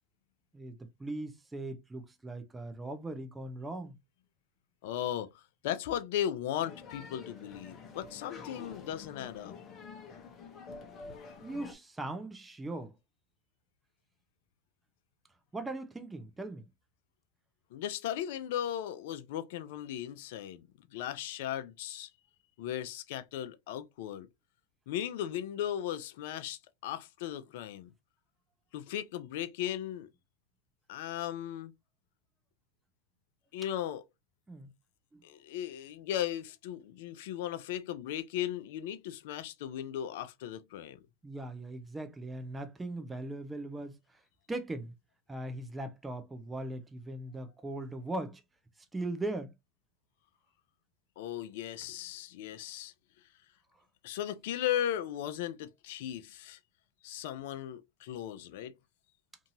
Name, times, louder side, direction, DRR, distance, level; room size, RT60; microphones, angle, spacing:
voice 1, 0.5-4.0 11.4-12.9 15.5-16.7 34.5-34.7 35.1-35.2 41.2-44.0 44.5-44.9 45.3-48.4 48.9-49.5, right 2 dB, 10° right, 0.5 m, -39 dB
voice 2, 4.8-9.6 17.7-22.1 22.6-24.3 24.9-27.9 28.7-30.1 30.9-31.7 33.5-34.0 35.2-41.0 51.2-52.9 54.0-56.6 57.0-58.8, left 11 dB, 65° left, 0.4 m, -37 dB
sound 1, 6.5-11.7, left 5 dB, 35° left, 0.8 m, -48 dB
2.6 x 2.6 x 2.7 m
hypercardioid pair, 105°, 0 cm